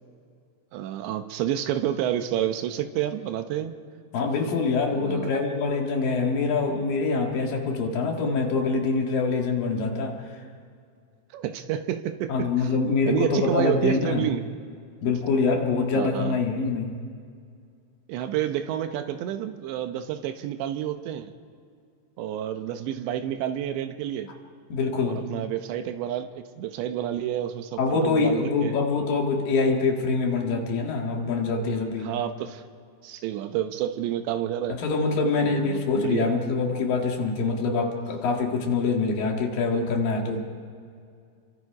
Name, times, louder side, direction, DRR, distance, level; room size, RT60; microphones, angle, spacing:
voice 1, 0.7-3.8 4.9-5.4 11.3-12.8 13.1-14.4 15.9-16.4 18.1-21.3 22.2-24.3 25.0-28.8 32.0-32.6 33.0-34.8 35.4-36.3, right 11 dB, 75° right, 8 dB, 3.0 m, -29 dB
voice 2, 4.1-10.2 12.3-14.3 15.0-17.0 24.7-25.3 27.8-32.1 34.7-40.4, left 4 dB, 55° left, 1 dB, 3.1 m, -25 dB
29.5 x 24.0 x 4.8 m, 2.3 s
omnidirectional pair, 5.4 m